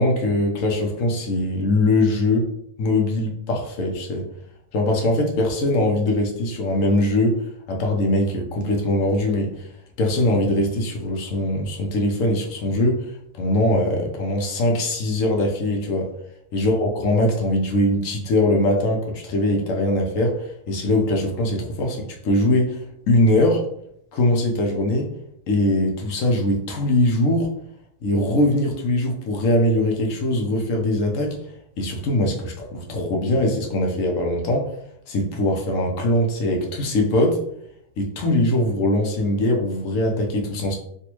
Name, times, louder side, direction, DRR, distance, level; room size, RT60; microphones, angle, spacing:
voice 1, 0.0-2.5 2.8-4.2 4.7-7.4 7.7-9.7 10.0-13.0 13.3-16.1 16.5-22.8 23.1-23.6 24.1-25.1 25.5-27.5 28.0-31.4 31.8-34.7 35.1-37.4 38.0-40.8, left 1 dB, 70° left, 1 dB, 1.0 m, -21 dB
3.3 x 2.5 x 2.9 m, 0.73 s
omnidirectional pair, 1.5 m